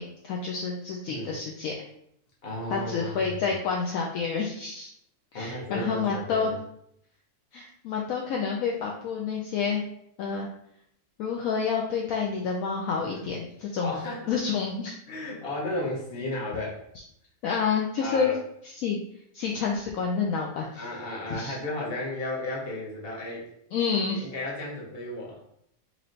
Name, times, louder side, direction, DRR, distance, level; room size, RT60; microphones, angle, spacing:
voice 1, 0.0-1.7 2.7-4.9 5.3-6.5 7.5-9.8 10.2-10.5 11.2-13.9 14.3-15.0 17.4-18.3 18.7-19.0 19.3-20.8 21.3-21.6 23.7-24.3, left 5 dB, 70° left, -1 dB, 0.9 m, -29 dB
voice 2, 2.4-3.4 5.3-6.5 13.0-13.2 13.8-14.3 15.1-16.8 18.0-18.3 20.7-23.5 24.1-25.4, left 1 dB, 45° left, -3 dB, 1.2 m, -34 dB
3.1 x 3.0 x 3.8 m, 0.72 s
omnidirectional pair, 1.6 m